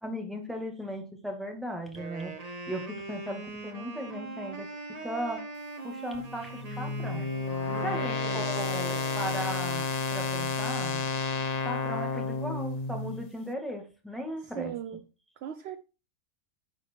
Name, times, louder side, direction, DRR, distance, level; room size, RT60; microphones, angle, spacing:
voice 1, 0.0-2.4 2.7-4.7 5.0-5.5 5.8-7.3 7.8-11.1 11.6-14.8, equal, ahead, 2.0 m, -37 dB
Wind instrument woodwind instrument, 1.9-9.6, right 3 dB, 25° right, 1.4 m, -41 dB
sound 1, 6.1-13.3, left 4 dB, 45° left, 0.5 m, -31 dB
voice 2, 7.6-9.5 14.4-15.0 15.4-15.8, right 9 dB, 65° right, 0.6 m, -40 dB
10.0 x 5.0 x 4.6 m
omnidirectional pair, 1.5 m